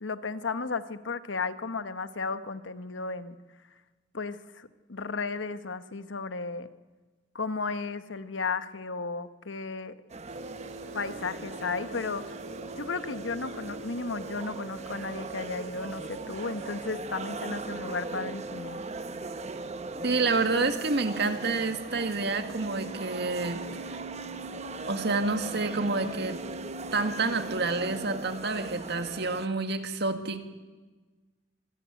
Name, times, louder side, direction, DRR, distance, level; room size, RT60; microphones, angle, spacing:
voice 1, 0.0-3.4 4.1-6.7 7.3-9.9 10.9-12.3 12.7-18.8, left 4 dB, 80° left, 11 dB, 1.2 m, -34 dB
sound 1, 10.1-29.5, right 3 dB, 35° right, 1.0 m, -40 dB
sound 2, 10.3-16.9 17.2-21.6 21.8-28.1, right 3 dB, 85° right, 2.6 m, -44 dB
voice 2, 20.0-23.6 23.9-24.0 24.9-26.4 26.9-30.4, right 3 dB, 60° right, 7 dB, 1.9 m, -28 dB
25.5 x 17.0 x 9.2 m, 1.3 s
head